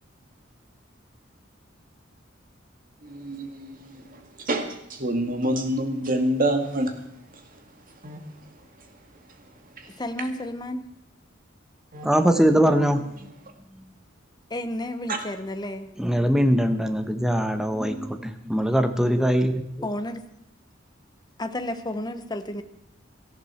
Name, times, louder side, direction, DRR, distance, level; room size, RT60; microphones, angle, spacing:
voice 1, 3.0-7.0 7.5-8.2 9.8-10.0 11.9-12.1 15.1-15.2, right 1 dB, 45° right, 5 dB, 2.0 m, -28 dB
voice 2, 9.9-10.9 14.5-15.9 19.8-20.2 21.4-22.6, left 1 dB, 20° left, 9 dB, 1.0 m, -31 dB
voice 3, 12.0-13.1 13.7-13.9 16.0-19.9, equal, 5° right, 7 dB, 1.1 m, -22 dB
18.0 x 14.0 x 4.4 m, 0.78 s
head